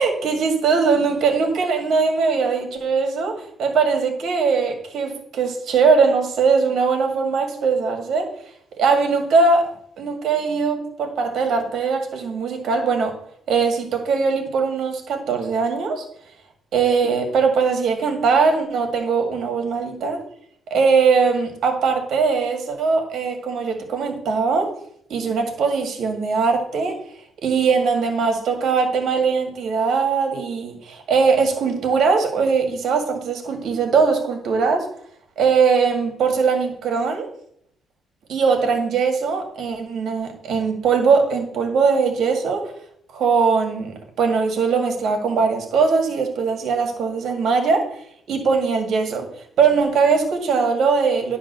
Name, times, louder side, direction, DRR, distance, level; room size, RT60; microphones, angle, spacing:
voice 1, 0.0-3.3 3.6-8.3 8.8-13.1 13.5-16.0 16.7-20.2 20.7-24.7 25.1-27.0 27.4-34.9 35.4-37.3 38.3-42.7 43.1-47.9 48.3-49.3 49.6-51.4, right 5 dB, 70° right, 3 dB, 2.0 m, -20 dB
10.0 x 3.5 x 6.7 m, 0.70 s
cardioid pair, 90°, 0 cm